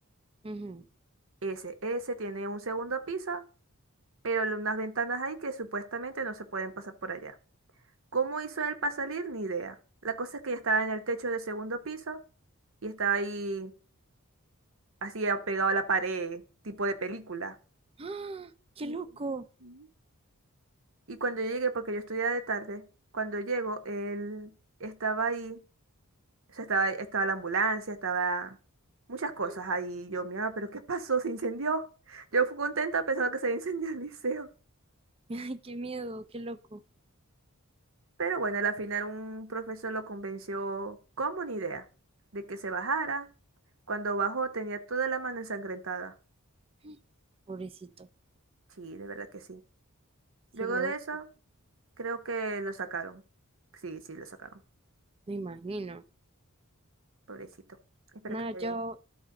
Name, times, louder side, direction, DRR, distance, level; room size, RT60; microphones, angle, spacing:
voice 1, 0.4-0.9 18.0-19.5 29.5-29.6 35.3-36.8 46.8-47.0 47.5-48.1 50.6-50.9 55.3-56.0 58.3-59.0, right 2 dB, 25° right, 0.4 m, -37 dB
voice 2, 1.4-3.4 4.2-7.3 8.1-9.8 10.0-12.2 12.8-13.7 15.0-17.6 18.8-18.9 19.6-19.8 21.1-22.9 23.1-24.5 24.8-25.6 26.5-28.6 29.1-34.5 38.2-41.8 42.3-43.3 43.9-46.1 48.8-49.6 50.5-51.3 52.0-53.2 53.8-54.5 57.3-57.5 58.1-58.8, right 4 dB, 60° right, 0.9 m, -32 dB
12.5 x 4.3 x 3.8 m
head